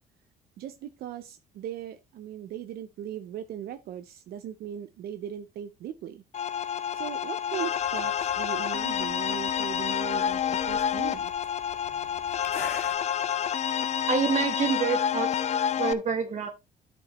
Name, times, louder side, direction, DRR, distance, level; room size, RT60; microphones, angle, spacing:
voice 1, 0.6-6.2 6.9-11.3, right 10 dB, 65° right, 0.7 m, -38 dB
sound 1, 6.3-15.9, left 9 dB, 40° left, 0.6 m, -28 dB
sound 2, 7.8-13.0, left 6 dB, 70° left, 2.2 m, -45 dB
voice 2, 14.1-16.5, right 5 dB, 45° right, 1.2 m, -28 dB
11.5 x 5.3 x 3.0 m
cardioid pair, 110°, 17 cm